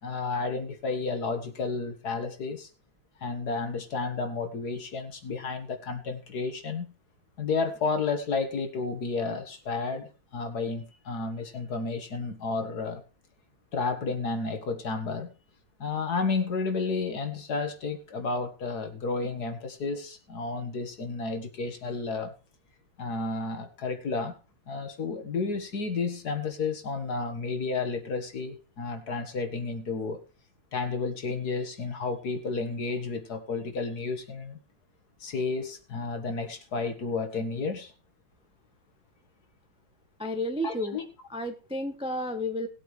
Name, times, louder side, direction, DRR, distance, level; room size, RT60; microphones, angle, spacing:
voice 1, 0.0-2.7 3.2-6.9 7.4-13.0 13.7-15.3 15.8-22.3 23.0-24.4 24.7-30.2 30.7-34.6 35.2-37.9 40.6-41.0, left 4 dB, 50° left, 2.0 m, -31 dB
voice 2, 40.2-41.0 41.3-42.7, left 1 dB, 5° right, 0.4 m, -31 dB
19.0 x 8.4 x 3.2 m
omnidirectional pair, 2.2 m